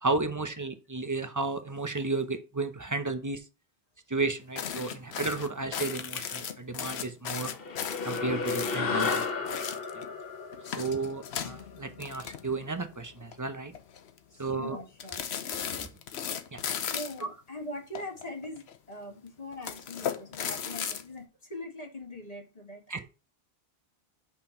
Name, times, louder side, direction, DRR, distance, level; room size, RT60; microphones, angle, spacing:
voice 1, 0.0-3.4 4.1-7.5 8.0-9.2 10.8-13.7 14.4-14.8 15.7-15.8 16.5-16.6 22.9-23.1, right 3 dB, 20° right, 0.6 m, -33 dB
sound 1, 4.6-10.1 10.5-12.8 13.1-13.3 13.7-14.2 15.0-17.2 18.0-18.8 19.5-21.0, left 8 dB, 85° left, 1.0 m, -36 dB
sound 2, 7.5-12.2, left 4 dB, 65° left, 1.1 m, -33 dB
voice 2, 14.3-15.2 16.6-23.1, left 1 dB, 35° left, 1.7 m, -42 dB
5.7 x 4.4 x 4.3 m
omnidirectional pair, 1.1 m